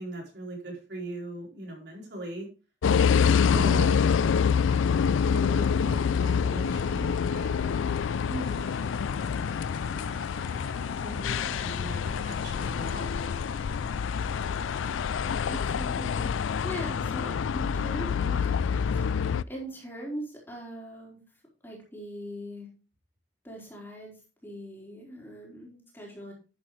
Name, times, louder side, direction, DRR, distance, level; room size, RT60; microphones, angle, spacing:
voice 1, 0.0-2.5 3.4-4.0 5.2-7.7 9.9-13.1, right 1 dB, 65° right, -1 dB, 4.3 m, -40 dB
sound 1, 2.8-19.4, left 6 dB, 90° left, 0.4 m, -26 dB
sound 2, 6.6-15.9, left 3 dB, 50° left, 4.0 m, -47 dB
voice 2, 8.3-8.6 15.5-21.2 21.6-22.7 23.4-24.1 24.4-26.3, equal, 10° left, -3 dB, 4.3 m, -41 dB
11.5 x 8.6 x 3.2 m, 0.33 s
head